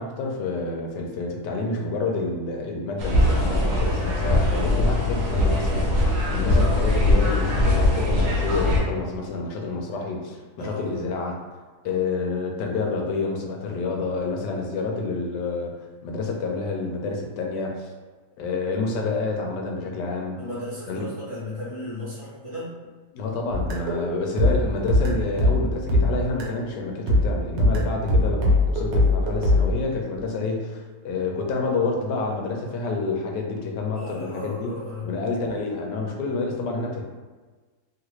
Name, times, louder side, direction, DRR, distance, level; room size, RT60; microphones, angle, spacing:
voice 1, 0.0-5.8 6.3-11.4 11.8-15.7 16.0-17.9 18.4-20.4 20.9-21.0 23.1-34.7 35.0-37.0, left 3 dB, 80° left, 1 dB, 1.2 m, -28 dB
sound 1, 3.0-8.8, left 1 dB, 60° right, 1.0 m, -21 dB
voice 2, 10.6-10.9 20.4-22.7 33.9-35.1, left 1 dB, 30° left, -10 dB, 0.7 m, -35 dB
sound 2, 23.5-26.7 27.1-29.7, left 1 dB, 90° right, 1.4 m, -21 dB
3.2 x 2.4 x 3.0 m, 1.3 s
omnidirectional pair, 1.9 m